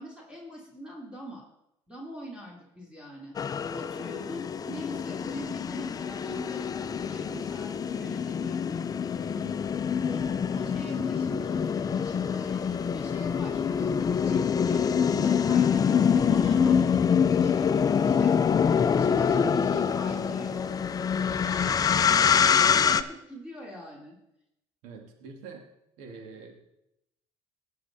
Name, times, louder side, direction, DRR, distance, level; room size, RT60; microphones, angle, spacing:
voice 1, 0.0-1.5 1.9-3.3 3.7-8.6 10.0-18.4 18.8-20.7 21.1-22.2 22.6-24.2, equal, 10° right, -3 dB, 3.4 m, -43 dB
sound 1, 3.4-23.0, left 7 dB, 35° left, 0.6 m, -25 dB
voice 2, 10.3-10.9 24.8-25.7 26.0-26.6, right 5 dB, 80° right, 4 dB, 2.2 m, -46 dB
18.5 x 6.6 x 4.2 m, 0.83 s
supercardioid pair, 85°, 11 cm